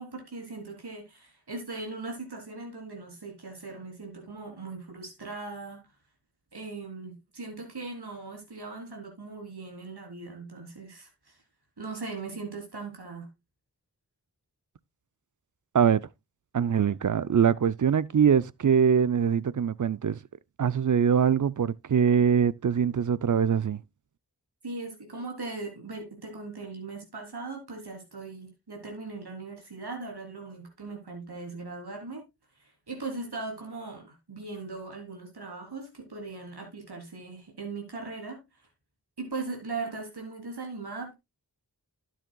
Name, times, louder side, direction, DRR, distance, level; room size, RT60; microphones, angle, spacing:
voice 1, 0.0-5.9 6.5-11.4 11.8-13.3 24.6-32.2 32.6-38.4 39.2-41.1, right 3 dB, 90° right, 3.6 m, -39 dB
voice 2, 15.7-16.1 16.5-20.2 20.6-23.8, right 7 dB, 50° right, 0.5 m, -23 dB
12.0 x 9.4 x 2.3 m
wide cardioid pair, 40°, 38 cm